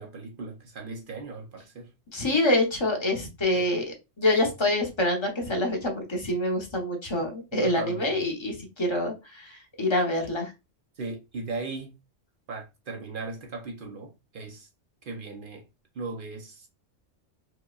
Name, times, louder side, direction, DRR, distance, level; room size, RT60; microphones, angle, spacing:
voice 1, 0.0-1.9 3.5-3.7 7.5-8.2 11.0-12.0 12.5-14.7 15.0-15.7 15.9-16.7, right 3 dB, 50° right, 0.7 m, -37 dB
voice 2, 2.1-10.5, left 1 dB, 25° left, 0.8 m, -26 dB
4.8 x 2.2 x 2.3 m
omnidirectional pair, 1.3 m